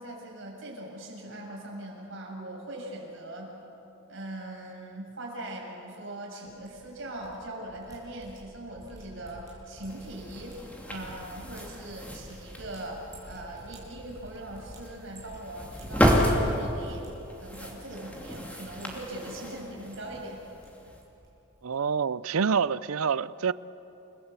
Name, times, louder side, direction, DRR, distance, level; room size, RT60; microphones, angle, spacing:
voice 1, 0.0-3.5 4.1-10.6 10.9-17.1 17.4-20.5 20.8-20.9, right 1 dB, 65° right, 6.7 m, -41 dB
sound 1, 6.5-7.3 7.6-16.5 16.8-17.1 17.4-18.4 18.7-19.5 19.8-20.7 20.9-21.3 21.5-21.7, equal, 15° right, 6.6 m, -50 dB
sound 2, 9.9-21.0, equal, 5° left, 2.6 m, -32 dB
voice 2, 21.6-23.5, right 6 dB, 80° right, 0.6 m, -27 dB
29.5 x 18.5 x 8.3 m
head